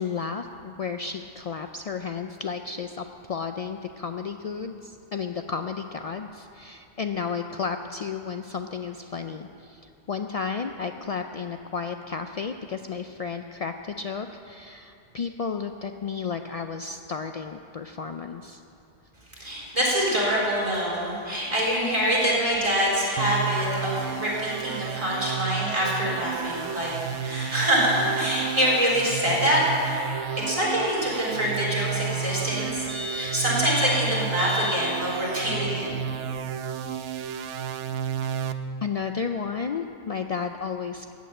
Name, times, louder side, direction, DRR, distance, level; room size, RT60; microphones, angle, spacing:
voice 1, 0.0-9.8 10.1-18.6 38.8-41.1, left 5 dB, 70° left, 6 dB, 0.3 m, -32 dB
voice 2, 19.4-26.9 27.2-30.0 30.3-35.9, equal, 30° right, -6 dB, 4.3 m, -25 dB
sound 1, 23.2-38.5, right 8 dB, 85° right, 1.0 m, -32 dB
14.5 x 8.2 x 8.8 m, 2.6 s
omnidirectional pair, 1.2 m